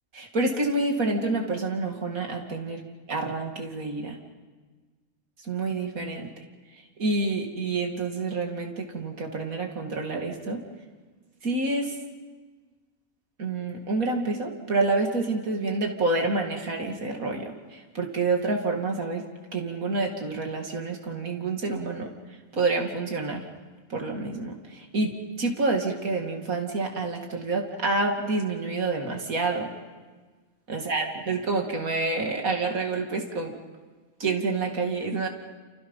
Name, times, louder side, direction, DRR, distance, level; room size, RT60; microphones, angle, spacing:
voice 1, 0.1-2.8 3.1-4.2 5.4-6.3 7.0-10.6 11.4-11.9 13.4-19.2 19.5-22.1 22.5-23.4 23.9-25.1 25.4-29.7 30.7-33.5 34.2-35.3, right 3 dB, 80° right, 2 dB, 2.9 m, -28 dB
29.5 x 29.0 x 5.6 m, 1.4 s
omnidirectional pair, 1.4 m